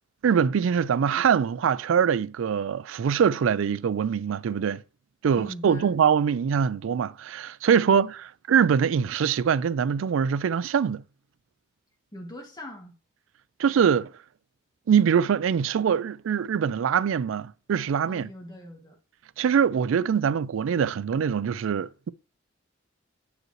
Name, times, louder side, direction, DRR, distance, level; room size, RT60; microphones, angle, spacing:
voice 1, 0.2-4.8 5.2-8.2 8.5-11.0 13.6-14.1 14.9-18.3 19.4-22.1, right 7 dB, 80° right, 0.3 m, -23 dB
voice 2, 5.4-6.0 7.8-8.1 12.1-12.9 18.1-19.0, equal, 20° left, 1.5 m, -41 dB
7.7 x 4.9 x 3.1 m
head